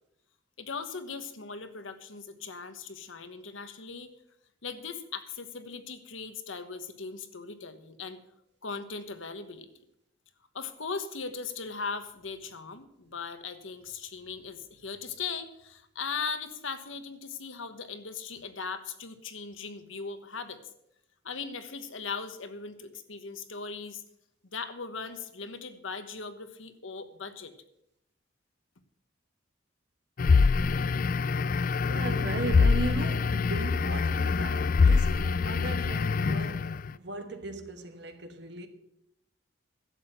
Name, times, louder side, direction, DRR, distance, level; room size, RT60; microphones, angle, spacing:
voice 1, 0.6-4.1 4.6-8.2 8.6-9.7 10.5-20.6 21.2-24.0 24.5-27.5, left 5 dB, 85° left, 1.3 m, -39 dB
sound 1, 30.2-36.9, left 4 dB, 45° left, 0.3 m, -25 dB
voice 2, 31.2-38.7, right 2 dB, 60° right, 1.3 m, -38 dB
11.5 x 8.0 x 7.9 m
head